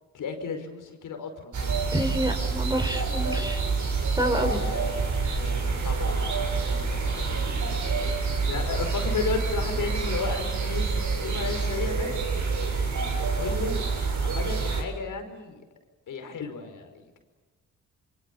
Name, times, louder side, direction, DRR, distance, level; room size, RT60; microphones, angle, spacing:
voice 1, 0.1-1.7 4.4-7.8 8.5-12.2 13.3-13.8 14.2-15.6 16.1-17.2, left 5 dB, 65° left, 6 dB, 5.2 m, -34 dB
sound 1, 1.5-14.8, right 4 dB, 60° right, 7.4 m, -27 dB
voice 2, 1.9-3.6 4.2-4.6, right 1 dB, 10° right, 5 dB, 6.2 m, -27 dB
26.0 x 24.5 x 8.5 m, 1.2 s
hypercardioid pair, 45°, 34 cm